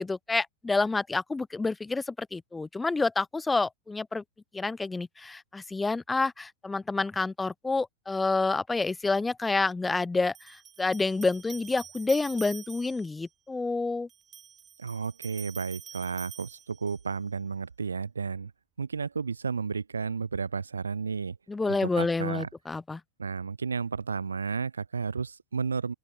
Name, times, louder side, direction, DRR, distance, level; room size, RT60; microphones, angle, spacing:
voice 1, 0.0-4.2 4.5-14.1 21.5-23.0, left 3 dB, 10° left, 0.3 m, -28 dB
sound 1, 9.1-9.2 10.3-13.2 14.1-17.2, right 8 dB, 25° right, 0.7 m, -47 dB
voice 2, 14.8-18.5 18.8-21.4 21.7-22.5 23.2-25.9, right 5 dB, 75° right, 0.4 m, -32 dB
open air
figure-of-eight pair, 90°, 0 cm